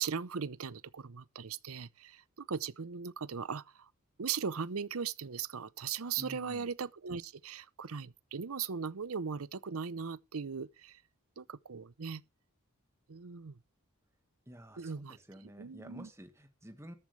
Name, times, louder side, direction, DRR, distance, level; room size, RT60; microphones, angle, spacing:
voice 1, 0.0-3.9 4.2-11.0 11.4-12.2 13.1-13.6 14.8-15.2 15.6-16.1, right 6 dB, 75° right, 0.7 m, -38 dB
voice 2, 6.2-6.7 14.5-16.9, equal, 15° right, 1.7 m, -50 dB
14.0 x 12.0 x 3.3 m
head